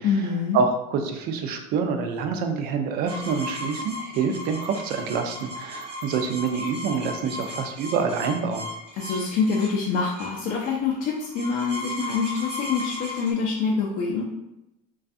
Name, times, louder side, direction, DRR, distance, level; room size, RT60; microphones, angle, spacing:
voice 1, 0.0-0.6 8.9-14.2, left 5 dB, 50° left, -2 dB, 0.4 m, -25 dB
voice 2, 0.5-8.7, right 5 dB, 55° right, 6 dB, 0.4 m, -26 dB
sound 1, 3.1-13.3, left 1 dB, 70° right, 1.0 m, -36 dB
2.5 x 2.3 x 2.4 m, 0.90 s
supercardioid pair, 115°, 19 cm